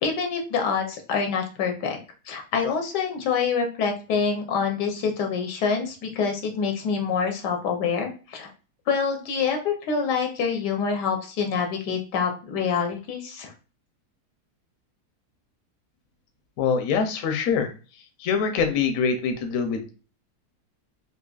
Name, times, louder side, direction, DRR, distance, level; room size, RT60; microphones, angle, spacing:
voice 1, 0.0-2.0 2.3-8.5 8.9-13.5, left 6 dB, 85° left, 3 dB, 1.4 m, -26 dB
voice 2, 16.6-17.7 18.2-19.9, left 6 dB, 70° left, 6 dB, 0.9 m, -24 dB
3.8 x 2.7 x 2.3 m, 0.35 s
omnidirectional pair, 1.7 m